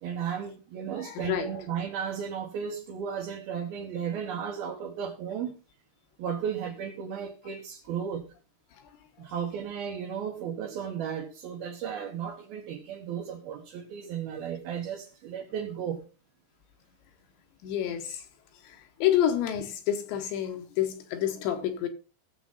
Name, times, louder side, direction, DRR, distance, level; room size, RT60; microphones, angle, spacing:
voice 1, 0.0-5.6 6.2-8.2 9.2-16.0, right 8 dB, 65° right, 2.7 m, -34 dB
voice 2, 1.0-1.6 17.6-18.3 18.6-21.9, left 11 dB, 75° left, 3.0 m, -29 dB
17.5 x 7.1 x 3.9 m
omnidirectional pair, 5.7 m